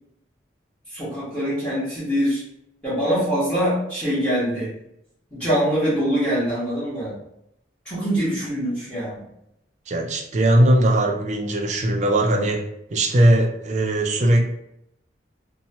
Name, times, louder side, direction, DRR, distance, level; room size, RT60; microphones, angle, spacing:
voice 1, 0.9-2.4 2.8-4.7 5.3-7.2 7.8-9.2, equal, 5° left, -12 dB, 1.1 m, -23 dB
voice 2, 9.9-12.6 12.9-14.4, right 1 dB, 40° right, 2 dB, 0.4 m, -19 dB
2.8 x 2.2 x 2.7 m, 0.79 s
head